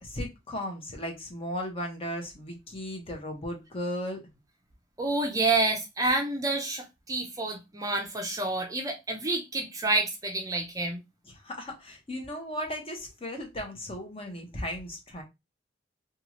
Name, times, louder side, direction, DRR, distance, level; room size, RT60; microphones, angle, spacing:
voice 1, 0.0-4.2 11.3-15.2, equal, 30° left, 0.9 m, -36 dB
voice 2, 5.0-11.0, right 2 dB, 20° right, 0.5 m, -28 dB
2.7 x 2.4 x 2.9 m
head